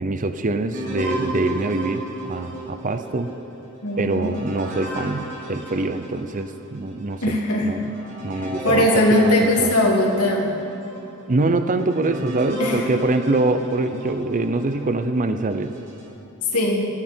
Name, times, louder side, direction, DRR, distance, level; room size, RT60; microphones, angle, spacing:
voice 1, 0.0-3.3 4.0-7.9 8.2-9.7 11.3-15.7, right 2 dB, 35° right, 9 dB, 0.6 m, -24 dB
sound 1, 0.7-6.5 7.0-7.1 7.7-14.9 15.5-16.1, right 1 dB, 60° right, 4.4 m, -33 dB
voice 2, 3.8-4.4 7.2-7.7 8.3-10.5 12.6-12.8 16.5-16.9, left 1 dB, 80° left, -1 dB, 2.7 m, -20 dB
27.5 x 9.8 x 4.5 m, 2.8 s
head